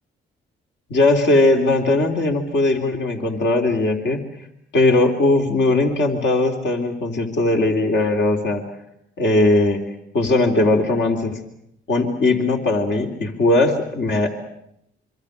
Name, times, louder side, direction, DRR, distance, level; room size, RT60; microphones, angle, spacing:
voice 1, 0.9-4.2 4.7-8.6 9.2-9.8 10.1-11.4 11.9-14.3, left 2 dB, 65° left, 3 dB, 3.8 m, -19 dB
26.0 x 25.0 x 6.7 m, 0.77 s
supercardioid pair, 70°, 20 cm